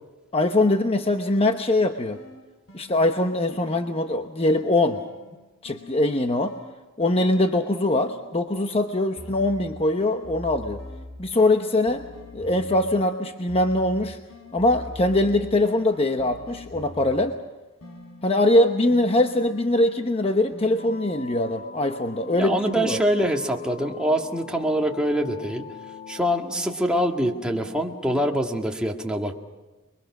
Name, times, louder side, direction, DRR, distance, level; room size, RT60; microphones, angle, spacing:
voice 1, 0.3-2.2 2.7-5.0 5.6-6.6 7.0-10.8 11.2-12.0 12.3-14.2 14.5-17.4 18.2-23.0, left 1 dB, 30° left, 6 dB, 1.0 m, -22 dB
sound 1, 1.3-4.2 4.8-8.6 9.2-13.1 13.5-17.5 17.8-20.9, left 1 dB, 80° left, 5.4 m, -44 dB
sound 2, 20.8-28.4, left 4 dB, 45° left, 3.3 m, -43 dB
voice 2, 22.2-25.6 26.1-29.3, equal, 5° right, 0 dB, 1.9 m, -24 dB
29.0 x 22.5 x 6.1 m, 1.1 s
head